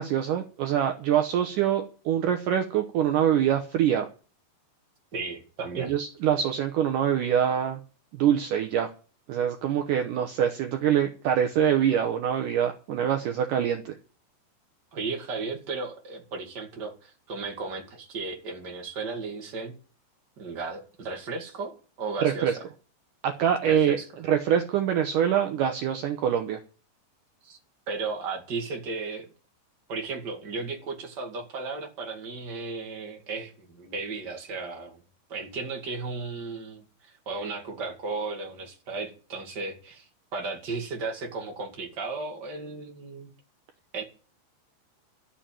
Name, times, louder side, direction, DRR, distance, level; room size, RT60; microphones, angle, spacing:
voice 1, 0.0-4.1 5.8-7.8 8.1-8.9 9.3-14.0 22.2-22.6 23.2-24.0 24.2-26.6, right 9 dB, 75° right, 2.0 m, -24 dB
voice 2, 5.1-5.9 14.9-19.7 20.4-22.5 23.6-24.1 27.4-27.6 27.9-29.3 29.9-35.0 35.3-40.0 40.3-43.3 43.9-44.0, right 4 dB, 30° right, 2.2 m, -35 dB
13.0 x 7.1 x 8.9 m
omnidirectional pair, 4.9 m